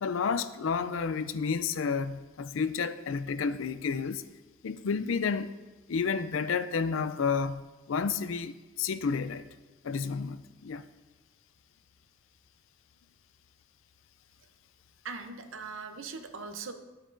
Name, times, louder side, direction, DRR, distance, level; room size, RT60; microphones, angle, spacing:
voice 1, 0.0-4.2 4.6-5.5 5.9-9.5 9.8-10.9, left 5 dB, 70° left, 0.4 m, -31 dB
voice 2, 15.0-16.7, right 4 dB, 70° right, 0.8 m, -40 dB
12.0 x 8.4 x 2.6 m
head